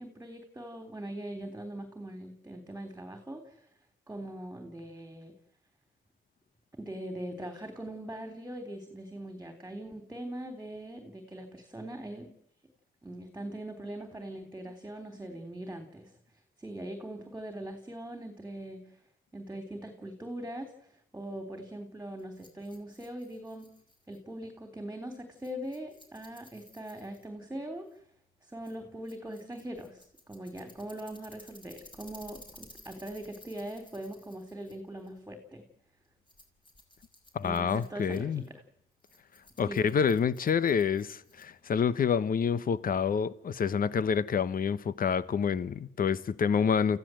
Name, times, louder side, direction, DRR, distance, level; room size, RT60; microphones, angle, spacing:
voice 1, 0.0-3.6 4.1-5.3 6.8-12.3 13.0-16.1 16.6-18.8 19.3-20.7 21.1-23.7 24.1-27.9 28.4-35.7 37.4-38.4 39.7-39.9, right 1 dB, 10° right, 3.5 m, -41 dB
Rattle, 22.2-41.7, left 1 dB, 25° left, 5.2 m, -58 dB
voice 2, 37.3-38.4 39.6-47.0, left 6 dB, 45° left, 1.1 m, -28 dB
29.0 x 15.0 x 7.8 m
cardioid pair, 90°, 20 cm